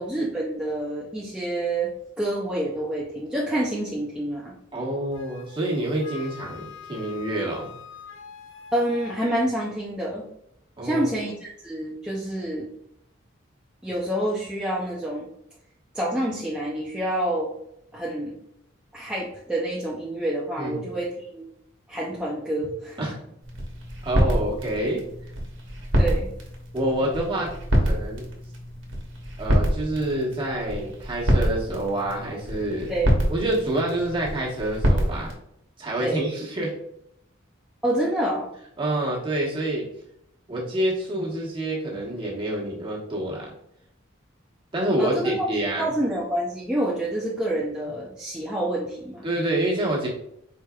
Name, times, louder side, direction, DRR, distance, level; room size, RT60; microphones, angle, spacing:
voice 1, 0.0-1.9 2.2-4.5 8.7-10.3 10.8-12.7 13.8-15.3 15.9-17.5 17.9-18.4 18.9-21.5 21.9-23.0 26.0-26.3 32.9-33.2 36.0-36.2 37.8-38.5 45.0-45.5 45.8-49.3, right 1 dB, 5° right, -6 dB, 0.6 m, -27 dB
voice 2, 4.7-7.7 10.8-11.2 20.6-20.9 23.0-23.2 24.0-25.0 26.7-27.5 27.8-28.3 29.4-32.9 33.3-35.3 35.8-36.7 38.8-39.9 40.5-43.5 44.7-45.9 49.2-50.1, right 1 dB, 25° right, -4 dB, 1.4 m, -27 dB
Wind instrument woodwind instrument, 5.1-9.2, left 7 dB, 70° left, 0.6 m, -44 dB
sound 1, 23.4-35.3, equal, 65° right, 1.2 m, -26 dB
4.7 x 4.4 x 2.3 m, 0.76 s
head